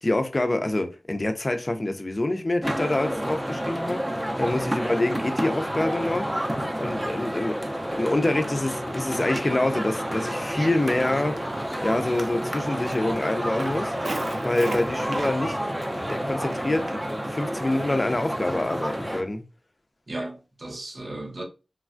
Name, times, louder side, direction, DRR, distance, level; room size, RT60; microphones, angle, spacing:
voice 1, 0.0-6.3 6.8-11.5 11.8-14.0 14.4-15.6 15.9-19.4, left 2 dB, 30° left, 0.5 m, -26 dB
sound 1, 2.6-19.2, equal, 15° right, 0.6 m, -30 dB
Walk footsteps, 10.6-18.0, right 2 dB, 75° right, 0.5 m, -40 dB
voice 2, 20.1-21.4, right 1 dB, 55° right, 0.8 m, -36 dB
3.1 x 2.3 x 2.5 m
wide cardioid pair, 65°, 0 cm